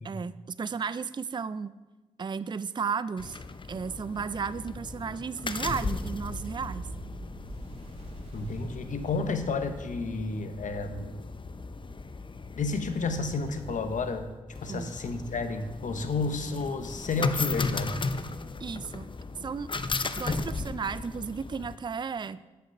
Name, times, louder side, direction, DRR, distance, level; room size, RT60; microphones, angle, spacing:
voice 1, 0.0-1.7 2.2-3.4 3.7-6.9 14.7-14.9 18.6-19.1 19.4-19.7 20.2-22.4, right 6 dB, 35° right, 15 dB, 0.4 m, -34 dB
sound 1, 3.2-21.8, left 3 dB, 35° left, 0.7 m, -36 dB
sound 2, 6.0-10.1, right 2 dB, 50° right, 2.2 m, -44 dB
voice 2, 8.3-11.1 12.5-14.3 14.6-17.9, left 3 dB, 65° left, 8 dB, 1.0 m, -31 dB
7.6 x 5.9 x 5.9 m, 1.2 s
supercardioid pair, 40°, 14 cm